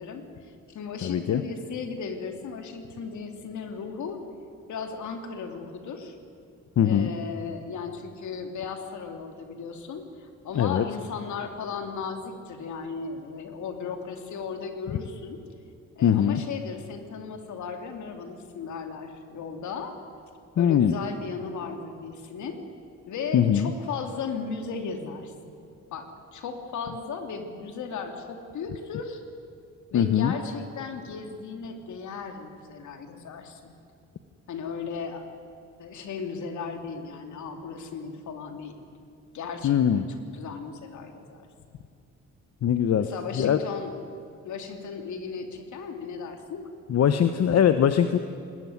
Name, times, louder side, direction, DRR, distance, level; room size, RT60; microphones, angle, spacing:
voice 1, 0.0-4.2 4.7-6.2 6.8-15.4 15.9-20.0 20.6-22.6 23.1-25.5 25.9-29.2 29.9-33.6 34.5-35.2 35.8-38.8 39.3-41.5 43.0-44.0 44.4-46.7, left 5 dB, 70° left, 5 dB, 3.0 m, -36 dB
voice 2, 1.0-1.4 6.8-7.1 10.5-10.8 16.0-16.4 20.6-21.0 23.3-23.7 29.9-30.3 39.6-40.1 42.6-43.1 43.3-43.6 46.9-48.2, left 9 dB, 55° left, 9 dB, 1.1 m, -21 dB
20.0 x 19.5 x 9.7 m, 2.5 s
cardioid pair, 90°, 30 cm